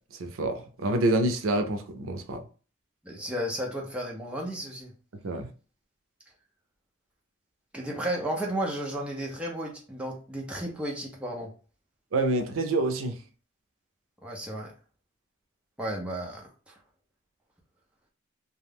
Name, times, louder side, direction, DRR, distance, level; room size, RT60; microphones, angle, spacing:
voice 1, 0.2-2.4 5.2-5.5 12.1-13.1, right 2 dB, 85° right, 0.5 m, -27 dB
voice 2, 3.0-4.9 7.7-11.5 14.2-14.7 15.8-16.8, right 1 dB, 5° right, 0.6 m, -33 dB
2.5 x 2.3 x 3.4 m
head